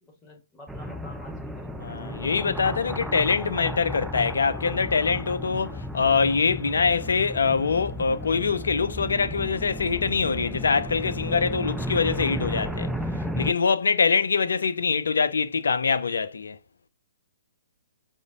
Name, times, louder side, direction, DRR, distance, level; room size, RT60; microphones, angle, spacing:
voice 1, 0.0-1.9, left 2 dB, 15° left, 1.2 m, -48 dB
sound 1, 0.7-13.5, equal, 5° right, 0.3 m, -33 dB
voice 2, 1.8-12.9 13.4-16.6, left 5 dB, 75° left, 0.4 m, -24 dB
4.8 x 2.0 x 2.5 m
figure-of-eight pair, 125°, 0 cm